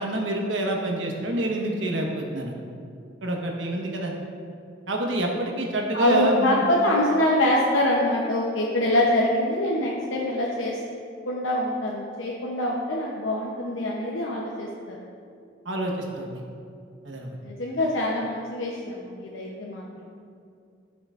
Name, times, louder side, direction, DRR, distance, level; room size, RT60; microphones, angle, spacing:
voice 1, 0.0-2.5 3.2-4.1 4.9-6.6 15.6-16.4 17.0-17.3, right 1 dB, 75° right, 0 dB, 1.2 m, -27 dB
voice 2, 5.9-10.8 11.3-15.0 17.4-19.8, left 1 dB, 85° left, -3 dB, 0.8 m, -24 dB
14.5 x 6.0 x 2.5 m, 2.4 s
head